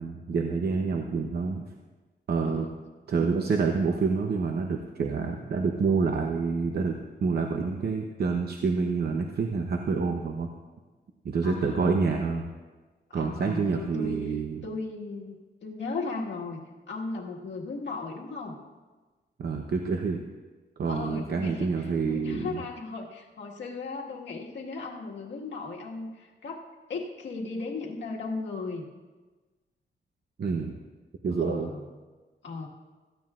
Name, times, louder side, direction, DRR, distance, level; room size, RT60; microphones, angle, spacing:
voice 1, 0.0-1.7 2.3-2.7 3.1-10.5 11.2-12.5 13.1-14.7 19.4-20.2 20.8-22.6 30.4-30.8 31.2-31.7, right 4 dB, 60° right, 3 dB, 0.8 m, -27 dB
voice 2, 2.4-2.8 11.4-12.0 13.1-14.2 14.6-18.6 20.9-28.8 31.4-31.9 32.4-32.7, left 3 dB, 75° left, -2 dB, 1.7 m, -36 dB
17.0 x 14.0 x 2.5 m, 1.3 s
wide cardioid pair, 130°, 19 cm